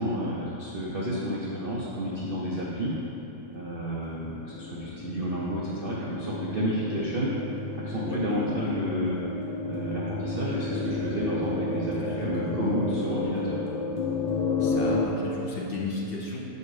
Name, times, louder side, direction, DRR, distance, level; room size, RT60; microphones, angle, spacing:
voice 1, 0.0-2.9 3.5-7.3 7.8-9.2 9.6-13.6, equal, 60° right, -6 dB, 0.6 m, -31 dB
sound 1, 2.0-15.1, left 3 dB, 85° left, 1.3 m, -32 dB
voice 2, 11.9-12.7 14.6-16.4, left 3 dB, 55° left, -3 dB, 0.6 m, -35 dB
5.4 x 5.1 x 4.7 m, 2.9 s
omnidirectional pair, 1.9 m